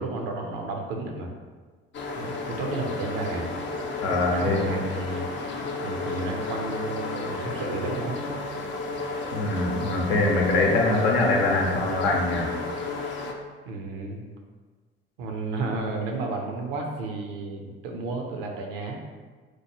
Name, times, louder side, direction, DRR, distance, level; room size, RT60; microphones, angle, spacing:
voice 1, 0.0-1.3 2.2-3.5 4.3-8.3 13.6-14.2 15.2-19.0, right 3 dB, 65° right, 2 dB, 0.6 m, -32 dB
sound 1, 1.9-13.3, left 3 dB, 35° left, 0.5 m, -32 dB
voice 2, 4.0-4.7 9.3-12.5, left 2 dB, 70° left, -1 dB, 0.7 m, -23 dB
4.5 x 2.2 x 2.9 m, 1.4 s
figure-of-eight pair, 50°, 31 cm